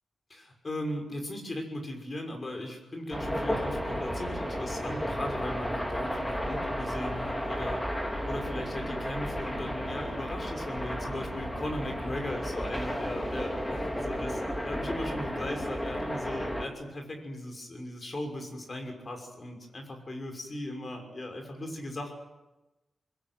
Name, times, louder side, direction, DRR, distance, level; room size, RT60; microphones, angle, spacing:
voice 1, 0.3-7.8 8.2-22.1, left 1 dB, 30° left, 4 dB, 6.1 m, -38 dB
sound 1, 3.1-16.6, equal, 10° left, 3.1 m, -33 dB
24.5 x 21.5 x 9.4 m, 1.1 s
wide cardioid pair, 135°, 0 cm